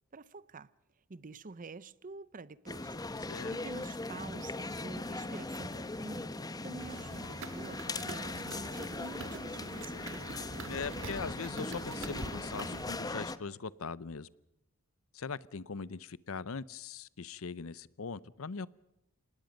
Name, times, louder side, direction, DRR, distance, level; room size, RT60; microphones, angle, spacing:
voice 1, 0.1-0.7 1.1-3.0 3.2-10.2, right 3 dB, 40° right, 0.7 m, -48 dB
sound 1, 2.7-13.4, left 2 dB, 20° left, 0.9 m, -39 dB
voice 2, 3.2-3.5 10.7-14.3 15.1-18.7, left 5 dB, 70° left, 0.7 m, -41 dB
sound 2, 6.8-12.8, right 3 dB, 65° right, 1.5 m, -45 dB
26.5 x 19.5 x 5.3 m
head